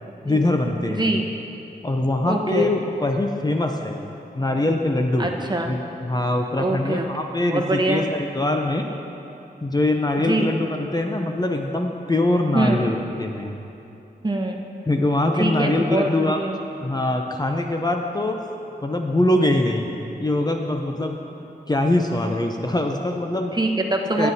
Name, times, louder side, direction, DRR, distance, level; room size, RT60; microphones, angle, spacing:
voice 1, 0.2-1.1 1.8-4.0 4.3-5.3 5.6-8.9 9.6-13.5 14.8-16.4 16.8-18.4 18.8-19.9 20.2-21.2 21.7-23.5 24.2-24.3, left 1 dB, 25° left, 3 dB, 0.6 m, -23 dB
voice 2, 0.9-1.3 2.3-2.7 5.2-5.7 6.6-7.1 7.5-8.1 10.2-10.5 12.5-12.9 14.2-14.6 15.4-16.6 23.5-24.3, right 2 dB, 25° right, 2 dB, 1.0 m, -23 dB
15.5 x 8.9 x 2.8 m, 2.8 s
cardioid pair, 55°, 17 cm